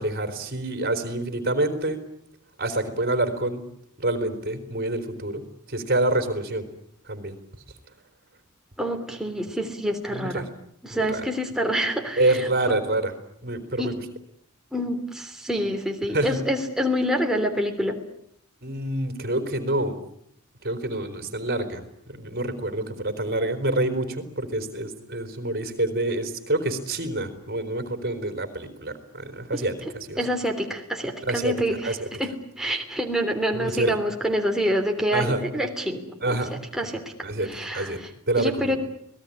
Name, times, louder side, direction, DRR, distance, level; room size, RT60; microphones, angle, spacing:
voice 1, 0.0-2.0 2.6-3.6 4.0-6.6 7.1-7.4 10.1-10.5 10.9-11.2 12.2-13.1 13.4-14.0 16.1-16.4 18.6-20.0 20.6-30.2 31.3-31.5 31.8-32.1 33.6-34.0 35.1-35.4 36.2-36.9 37.2-37.5 37.7-38.0 38.3-38.8, right 2 dB, 45° right, 8 dB, 3.9 m, -27 dB
voice 2, 8.8-10.5 10.8-12.8 13.8-13.9 14.7-18.0 29.8-29.9 30.2-36.0 36.3-36.4 36.7-37.0 37.4-38.1 38.3-38.8, equal, ahead, 2 dB, 3.2 m, -27 dB
26.0 x 19.0 x 9.9 m, 0.72 s
head